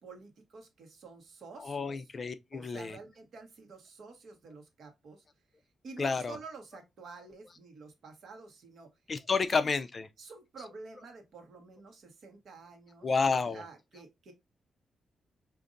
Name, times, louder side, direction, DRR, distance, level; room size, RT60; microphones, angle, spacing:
voice 1, 0.0-2.1 2.5-5.2 5.8-8.9 9.4-9.7 10.2-13.2 13.5-14.3, right 4 dB, 65° right, 1.1 m, -50 dB
voice 2, 1.6-3.0 6.0-6.4 9.1-10.1 13.0-13.6, left 4 dB, 35° left, 0.4 m, -30 dB
5.0 x 2.5 x 2.5 m
wide cardioid pair, 135°, 0 cm